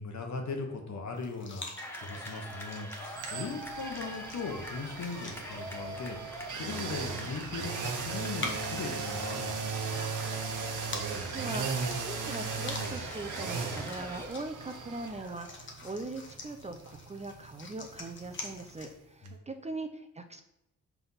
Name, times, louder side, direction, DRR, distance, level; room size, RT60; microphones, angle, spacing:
voice 1, 0.0-10.0 19.2-19.4, left 4 dB, 65° left, 3 dB, 1.1 m, -39 dB
sound 1, 1.2-18.9, left 3 dB, 40° left, 0.9 m, -47 dB
sound 2, 1.8-14.3, equal, 5° left, 1.0 m, -44 dB
sound 3, 3.2-19.0 19.3-19.4, right 5 dB, 85° right, 0.9 m, -38 dB
voice 2, 11.1-20.4, right 2 dB, 20° right, 6 dB, 0.5 m, -41 dB
5.9 x 3.5 x 5.6 m, 0.86 s
wide cardioid pair, 115°, 30 cm